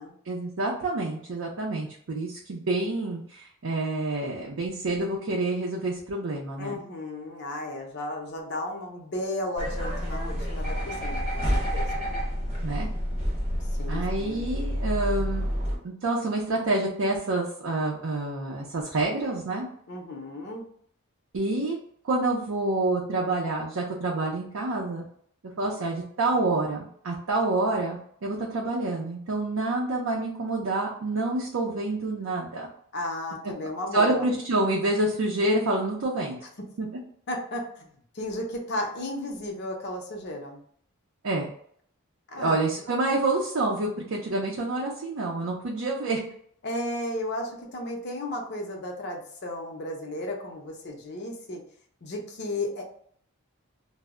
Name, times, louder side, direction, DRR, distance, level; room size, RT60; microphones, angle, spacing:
voice 1, 0.3-6.7 12.6-12.9 13.9-15.5 15.8-19.7 21.3-21.8 22.0-25.1 25.6-32.7 33.9-36.4 36.8-36.9 41.2-41.5 42.4-46.2, right 2 dB, 65° right, -2 dB, 0.5 m, -27 dB
voice 2, 6.6-11.4 11.7-12.0 13.8-14.4 19.9-20.6 32.9-34.3 37.3-37.8 38.1-40.6 42.3-42.6 46.6-51.6 52.0-52.8, left 1 dB, 50° left, 0 dB, 0.5 m, -34 dB
sound 1, 9.6-15.8, equal, 25° right, 0.8 m, -29 dB
2.1 x 2.0 x 3.5 m, 0.62 s
head